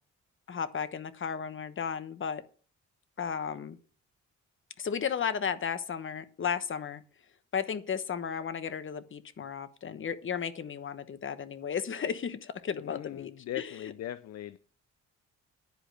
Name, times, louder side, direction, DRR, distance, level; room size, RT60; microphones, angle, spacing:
voice 1, 0.5-2.4 3.2-3.8 4.8-7.0 7.5-13.9, left 7 dB, 40° left, 1.1 m, -34 dB
voice 2, 12.8-14.6, left 12 dB, 55° left, 0.6 m, -39 dB
10.5 x 5.0 x 7.8 m
cardioid pair, 90°, 30 cm